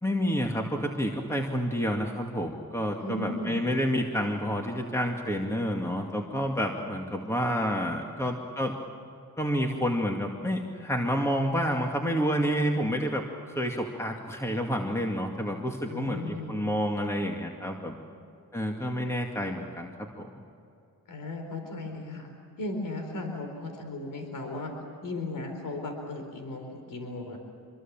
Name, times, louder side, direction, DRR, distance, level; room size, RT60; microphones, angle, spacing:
voice 1, 0.0-8.8 9.4-17.9 18.5-20.3, equal, 5° left, 1 dB, 2.3 m, -29 dB
voice 2, 3.0-3.6 15.8-16.6 21.1-22.3 22.6-24.7 25.0-27.4, left 2 dB, 55° left, 4 dB, 4.4 m, -36 dB
26.5 x 23.0 x 7.5 m, 2.5 s
cardioid pair, 100°, 38 cm